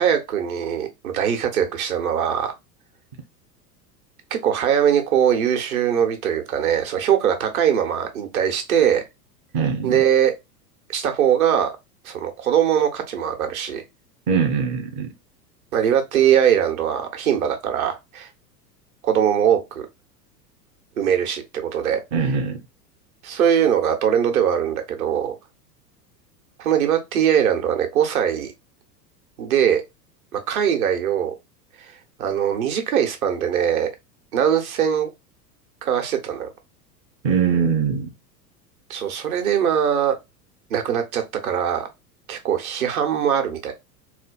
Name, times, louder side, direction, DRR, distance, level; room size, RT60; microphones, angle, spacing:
voice 1, 0.0-2.5 4.3-9.0 9.8-10.3 10.9-11.7 12.0-13.8 15.7-18.3 19.0-19.9 21.0-22.0 23.2-25.3 26.6-28.5 29.4-29.8 30.3-31.3 32.2-33.9 34.3-35.1 35.8-36.5 38.9-40.1 40.7-41.9 42.3-43.7, right 9 dB, 55° right, 1.1 m, -21 dB
voice 2, 9.5-10.0 14.3-15.1 22.1-22.6 37.2-38.1, right 6 dB, 15° right, 0.3 m, -22 dB
4.2 x 2.5 x 2.3 m
figure-of-eight pair, 90°, 50 cm